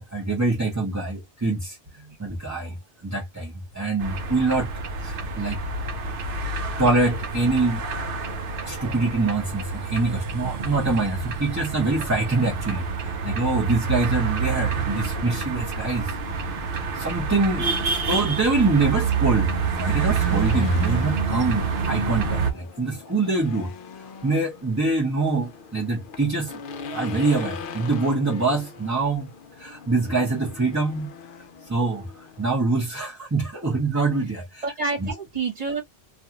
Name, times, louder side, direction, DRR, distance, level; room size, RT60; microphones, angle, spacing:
voice 1, 0.0-1.7 2.2-2.7 3.0-4.7 5.0-5.6 6.8-7.8 8.6-9.6 9.9-12.8 13.2-16.0 17.0-17.6 18.1-23.7 24.2-26.5 26.9-29.3 29.6-31.1 31.7-32.0 32.4-34.6 35.0-35.1, right 3 dB, 20° right, 0.8 m, -24 dB
sound 1, 4.0-22.5, right 5 dB, 65° right, 0.8 m, -27 dB
voice 2, 17.4-17.8 34.6-35.8, right 4 dB, 40° right, 1.2 m, -29 dB
Race car auto racing / Engine, 18.9-32.5, left 5 dB, 60° left, 0.7 m, -41 dB
2.5 x 2.4 x 2.8 m
omnidirectional pair, 1.1 m